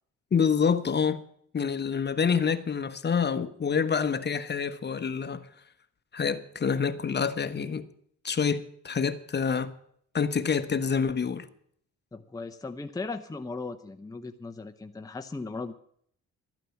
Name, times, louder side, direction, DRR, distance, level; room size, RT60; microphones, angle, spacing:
voice 1, 0.3-1.2 1.5-5.4 6.1-7.9 8.2-9.7 10.1-11.5, left 6 dB, 35° left, 1.1 m, -27 dB
voice 2, 12.1-15.7, left 3 dB, 10° left, 0.9 m, -37 dB
13.0 x 9.0 x 7.2 m
cardioid pair, 90°, 30 cm